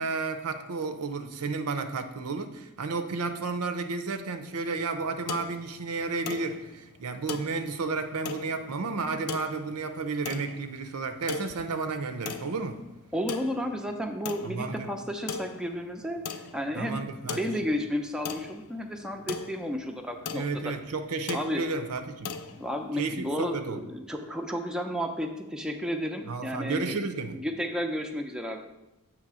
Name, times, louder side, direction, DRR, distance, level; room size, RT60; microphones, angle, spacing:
voice 1, 0.0-12.9 14.4-14.9 16.8-17.4 20.3-22.4 23.0-23.8 26.3-27.4, right 4 dB, 80° right, 9 dB, 0.6 m, -32 dB
sound 1, 4.5-23.2, left 5 dB, 80° left, 0.5 m, -41 dB
voice 2, 13.1-20.7 21.3-21.6 22.6-27.0 27.3-28.6, equal, 5° right, 3 dB, 0.5 m, -32 dB
7.7 x 3.2 x 6.1 m, 0.94 s
head